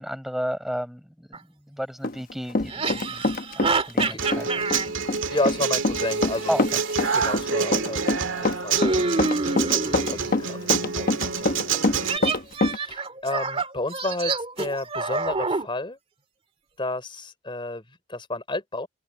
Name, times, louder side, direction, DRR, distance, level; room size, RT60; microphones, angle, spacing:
voice 1, 0.0-4.7 6.5-6.8 11.7-11.9, equal, ahead, 4.4 m, -33 dB
sound 1, 1.3-1.4 2.7-4.9 6.1-7.3 8.8-10.3 12.0-15.7, right 3 dB, 30° right, 2.3 m, -28 dB
Run, 2.0-3.7 4.0-12.8, left 2 dB, 45° left, 1.1 m, -25 dB
Human voice / Acoustic guitar, 4.2-12.2, right 6 dB, 75° right, 1.9 m, -27 dB
voice 2, 5.3-6.6 7.1-9.2 9.6-12.4 12.6-16.0 16.8-17.8 18.1-18.9, left 2 dB, 25° left, 3.7 m, -32 dB
open air
head